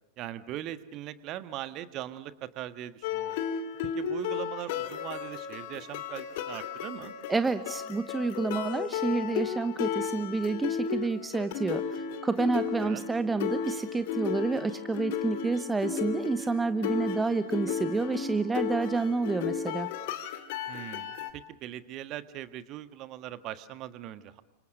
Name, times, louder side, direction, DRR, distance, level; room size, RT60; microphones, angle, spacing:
voice 1, 0.2-3.4 3.8-7.1 12.8-13.1 20.7-24.4, right 12 dB, 35° right, 12 dB, 1.5 m, -40 dB
sound 1, 3.0-21.3, left 7 dB, 50° left, 2.4 m, -34 dB
voice 2, 7.3-19.9, right 3 dB, 10° right, 12 dB, 0.9 m, -29 dB
29.5 x 26.5 x 6.7 m, 0.88 s
figure-of-eight pair, 90°, 0 cm